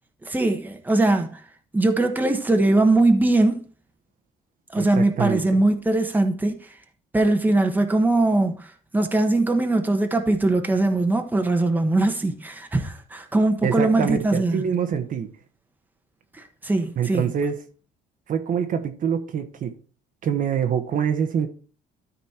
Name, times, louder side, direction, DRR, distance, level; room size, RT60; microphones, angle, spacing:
voice 1, 0.2-1.4 1.7-3.6 4.7-6.6 7.1-8.7 8.9-14.6 16.6-17.3, right 2 dB, 10° right, 1.3 m, -21 dB
voice 2, 4.8-5.4 13.6-15.3 17.0-17.6 18.3-19.7 20.2-21.5, right 8 dB, 55° right, 1.2 m, -25 dB
13.0 x 4.3 x 4.4 m
cardioid pair, 110°, 17 cm